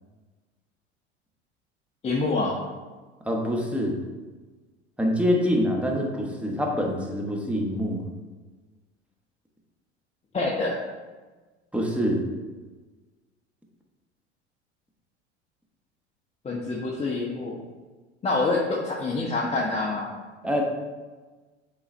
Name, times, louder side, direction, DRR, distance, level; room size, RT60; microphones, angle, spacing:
voice 1, 2.0-2.6 10.3-10.8 16.4-17.6 18.2-20.1, left 3 dB, 20° left, -3 dB, 0.9 m, -26 dB
voice 2, 3.2-3.9 5.0-8.0 11.7-12.2 20.4-20.6, equal, 5° right, 0 dB, 1.2 m, -25 dB
8.3 x 4.0 x 3.3 m, 1.3 s
figure-of-eight pair, 75°, 35 cm